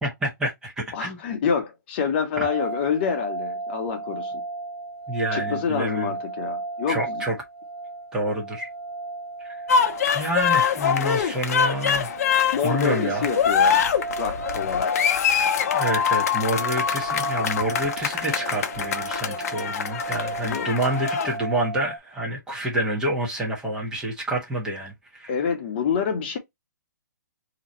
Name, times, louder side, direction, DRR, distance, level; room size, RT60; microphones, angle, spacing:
voice 1, 0.0-1.2 2.4-2.5 5.1-6.1 6.9-7.4 8.1-8.7 9.4-9.6 10.1-12.1 12.6-13.3 15.7-25.3, right 1 dB, 5° right, 1.2 m, -28 dB
voice 2, 0.9-4.4 5.3-7.2 12.5-13.8 14.2-15.1 20.4-20.7 25.3-26.4, left 7 dB, 35° left, 1.1 m, -27 dB
sound 1, 2.3-22.0, right 3 dB, 45° right, 0.5 m, -35 dB
sound 2, 9.7-21.4, left 7 dB, 50° left, 0.7 m, -24 dB
4.0 x 3.0 x 3.0 m
hypercardioid pair, 160°, 10 cm